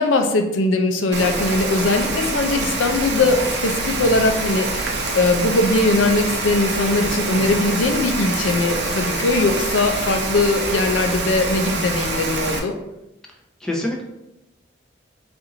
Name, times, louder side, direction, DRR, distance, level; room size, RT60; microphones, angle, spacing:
voice 1, 0.0-12.8, left 2 dB, 85° left, 6 dB, 0.5 m, -20 dB
Rain, 1.1-12.6, right 3 dB, 55° right, 0.6 m, -25 dB
voice 2, 13.6-14.0, left 1 dB, 5° left, -1 dB, 0.6 m, -27 dB
4.3 x 2.6 x 3.8 m, 0.91 s
head